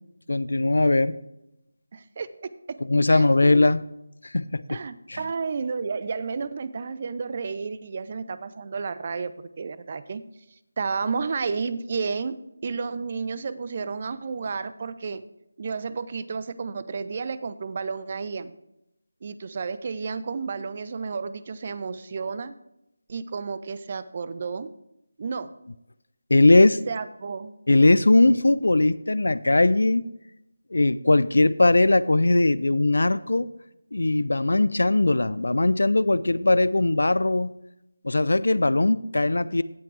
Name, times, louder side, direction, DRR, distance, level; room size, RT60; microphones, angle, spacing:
voice 1, 0.3-1.2 2.9-3.8 4.2-4.8 5.1-5.2 26.3-26.8 27.7-30.0 30.7-33.5 33.9-37.5 38.0-39.6, left 2 dB, 60° left, 18 dB, 0.4 m, -20 dB
voice 2, 1.9-2.8 3.1-3.5 4.7-10.2 10.8-12.4 12.6-15.2 15.6-18.5 19.2-22.5 23.1-24.7 25.2-25.5 26.9-27.5, right 5 dB, 35° right, 14 dB, 0.5 m, -31 dB
16.5 x 5.8 x 3.3 m, 0.84 s
figure-of-eight pair, 160°, 0 cm